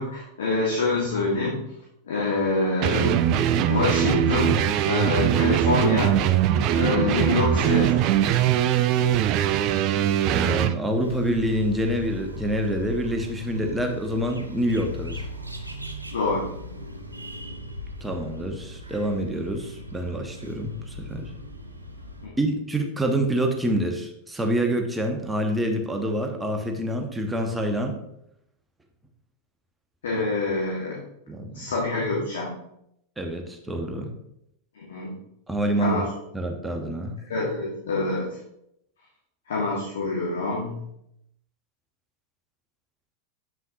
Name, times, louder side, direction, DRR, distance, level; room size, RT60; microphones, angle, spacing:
voice 1, 0.0-1.6 2.1-3.3 3.6-6.2 6.7-8.0 16.1-16.5 22.2-22.3 30.0-31.0 31.5-32.6 34.7-35.2 35.8-36.1 37.3-38.4 39.5-40.8, left 3 dB, 65° left, -4 dB, 1.4 m, -26 dB
sound 1, 2.8-10.8, right 10 dB, 40° right, 0.4 m, -21 dB
voice 2, 10.3-15.3 18.0-21.3 22.4-28.0 31.3-31.7 33.2-34.1 35.5-36.0 36.3-37.2, right 1 dB, 10° right, 3 dB, 0.9 m, -27 dB
sound 2, 11.0-22.3, left 1 dB, 85° right, 0.7 m, -38 dB
7.5 x 5.6 x 2.7 m, 0.78 s
figure-of-eight pair, 90°, 0 cm